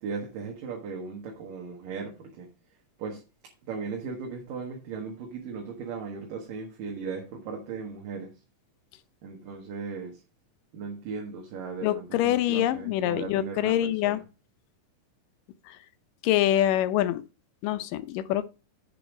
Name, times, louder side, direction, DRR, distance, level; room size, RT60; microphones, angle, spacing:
voice 1, 0.0-2.5 3.0-3.2 3.7-8.3 9.2-10.2 10.7-13.8 14.0-14.2, right 5 dB, 90° right, 3.3 m, -37 dB
voice 2, 11.8-14.2 15.7-15.8 16.2-17.2 17.6-18.5, left 13 dB, 90° left, 2.4 m, -25 dB
7.4 x 7.1 x 5.1 m
omnidirectional pair, 3.8 m